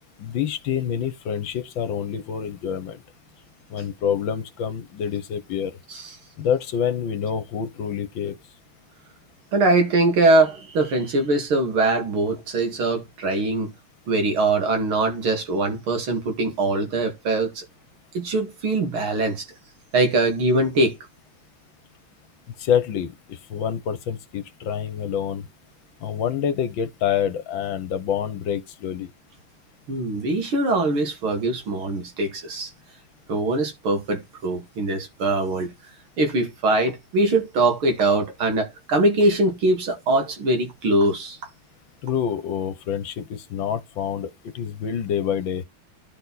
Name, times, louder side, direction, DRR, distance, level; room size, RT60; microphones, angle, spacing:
voice 1, 0.2-3.0 3.7-5.7 6.4-8.4 22.6-25.5 26.0-29.1 42.0-45.6, left 8 dB, 70° left, 1.8 m, -27 dB
voice 2, 9.5-13.7 14.1-17.6 18.1-19.4 19.9-21.0 29.9-32.7 33.3-35.7 36.2-41.4, right 2 dB, 80° right, 3.1 m, -22 dB
11.5 x 4.5 x 4.1 m
omnidirectional pair, 2.3 m